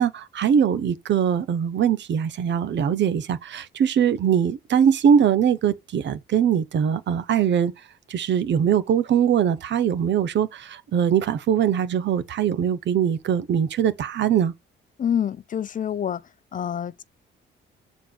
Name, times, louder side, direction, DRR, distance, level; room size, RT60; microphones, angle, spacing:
voice 1, 0.0-7.7 8.1-14.5, right 8 dB, 65° right, 1.0 m, -22 dB
voice 2, 15.0-16.2 16.5-17.0, left 9 dB, 40° left, 0.6 m, -27 dB
7.0 x 4.1 x 5.3 m
cardioid pair, 90°, 20 cm